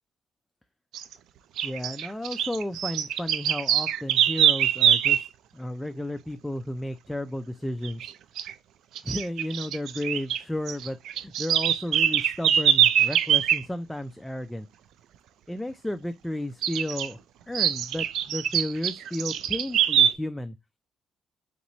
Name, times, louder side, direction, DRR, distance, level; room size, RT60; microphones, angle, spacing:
sound 1, 0.9-1.1 1.6-5.3 7.8-8.1 8.4-8.5 9.0-10.4 10.7-13.6 16.6-17.1 17.5-20.1, right 10 dB, 80° right, 0.3 m, -23 dB
voice 1, 1.6-5.3 5.5-8.1 9.0-14.7 15.5-17.2 17.5-20.6, left 1 dB, 5° left, 0.3 m, -33 dB
3.7 x 3.0 x 4.0 m
cardioid pair, 90°, 0 cm